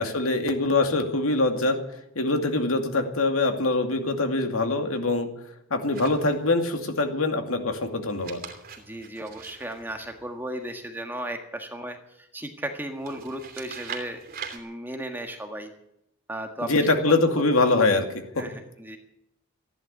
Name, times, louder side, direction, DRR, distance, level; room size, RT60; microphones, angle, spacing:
voice 1, 0.0-1.8 2.2-5.3 5.7-8.4 16.6-18.1, left 2 dB, 80° left, 5 dB, 2.4 m, -23 dB
sound 1, 5.9-6.7 8.0-10.6 13.0-14.6, right 6 dB, 45° right, 2.9 m, -42 dB
voice 2, 8.8-14.2 14.5-15.7 16.3-16.9 17.3-17.4 18.4-19.0, right 1 dB, 10° right, 4 dB, 1.6 m, -35 dB
15.0 x 11.0 x 8.4 m, 0.79 s
head